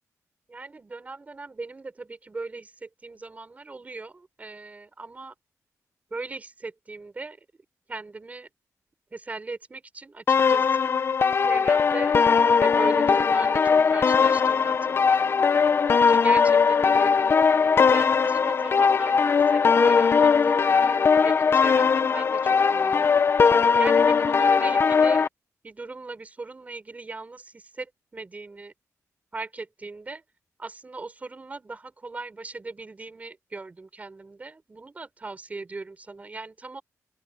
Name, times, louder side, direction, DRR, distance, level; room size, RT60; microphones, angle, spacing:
voice 1, 0.5-5.3 6.1-7.4 7.9-8.5 9.1-10.9 11.4-12.2 12.5-17.2 17.8-23.1 23.8-25.2 25.6-28.7 29.3-30.2 30.6-36.8, right 3 dB, 25° right, 5.7 m, -38 dB
sound 1, 10.3-25.3, left 5 dB, 40° left, 0.5 m, -20 dB
open air
wide cardioid pair, 165°, 6 cm